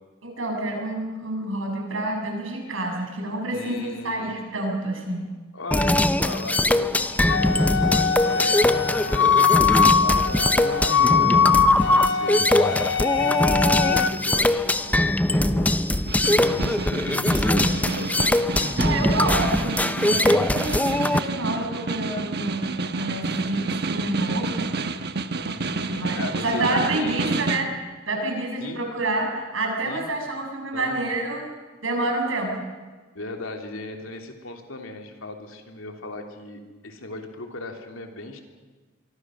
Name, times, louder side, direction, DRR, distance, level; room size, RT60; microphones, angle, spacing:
voice 1, 0.2-5.2 18.8-24.9 25.8-27.7 28.0-31.4 31.8-32.6, right 2 dB, 75° right, 1 dB, 6.8 m, -28 dB
voice 2, 3.5-4.4 5.5-9.4 9.7-12.4 13.0-15.7 16.3-18.3 25.5-27.5 28.6-28.8 29.8-30.0 30.7-31.1 33.1-38.4, left 2 dB, 85° left, 4 dB, 3.2 m, -37 dB
sound 1, 5.7-21.2, left 1 dB, 10° left, 0.6 m, -22 dB
Wind instrument woodwind instrument, 7.3-14.1, left 7 dB, 65° left, 1.0 m, -22 dB
Snare drum, 15.9-27.7, right 3 dB, 55° right, 1.2 m, -30 dB
25.0 x 24.0 x 6.4 m, 1.4 s
head